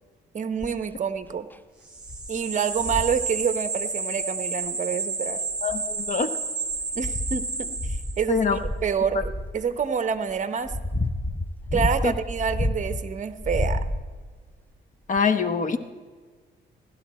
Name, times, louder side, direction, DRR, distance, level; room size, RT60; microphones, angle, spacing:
voice 1, 0.3-1.5 2.3-5.4 6.9-10.7 11.7-13.8, right 6 dB, 40° right, 11 dB, 0.9 m, -27 dB
sound 1, 0.6-0.9 1.5-1.6 2.1-2.3 2.8-3.2 4.6-4.7 5.5-6.2 6.7-9.6 10.3-13.0 13.4-14.3 15.2-15.3, left 1 dB, 10° left, 0.6 m, -30 dB
sound 2, 1.8-8.4, right 3 dB, 5° right, 4.2 m, -31 dB
voice 2, 5.6-6.3 8.3-8.6 12.0-12.1 15.1-15.8, left 5 dB, 40° left, 11 dB, 1.0 m, -24 dB
16.5 x 12.0 x 4.3 m, 1.5 s
cardioid pair, 90°, 20 cm